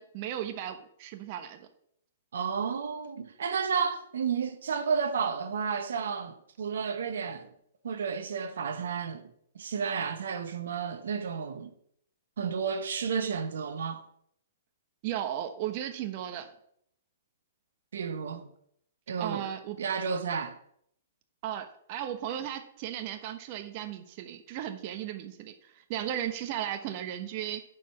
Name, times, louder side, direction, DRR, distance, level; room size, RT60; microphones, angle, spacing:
voice 1, 0.0-1.7 15.0-16.5 19.2-19.9 21.4-27.6, right 11 dB, 45° right, 1.0 m, -36 dB
voice 2, 2.3-7.5 7.8-11.7 12.4-14.0 17.9-18.5 19.1-19.5 19.8-20.6, right 6 dB, 75° right, 1.0 m, -32 dB
10.5 x 4.9 x 5.8 m
hypercardioid pair, 130°, 0 cm